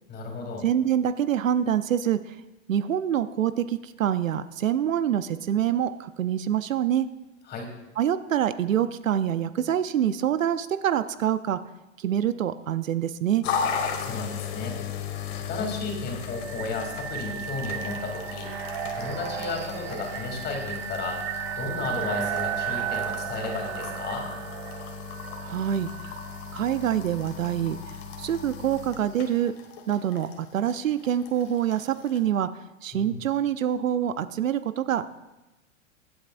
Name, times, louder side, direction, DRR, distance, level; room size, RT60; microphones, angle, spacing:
voice 1, 0.1-0.6 7.5-7.7 14.0-14.9 15.5-18.5 18.9-21.2 21.6-24.3 32.9-33.2, left 3 dB, 25° left, 2 dB, 3.0 m, -33 dB
voice 2, 0.6-2.3 2.7-7.1 8.0-11.6 12.0-13.4 25.4-25.9 26.5-27.8 28.2-29.5 29.9-32.5 32.8-35.1, right 10 dB, 80° right, 13 dB, 0.7 m, -25 dB
sound 1, 13.4-32.2, left 7 dB, 50° left, 2.0 m, -36 dB
sound 2, 16.2-26.9, right 10 dB, 50° right, 1.4 m, -35 dB
23.0 x 8.6 x 2.6 m, 1.0 s
hypercardioid pair, 120°, 39 cm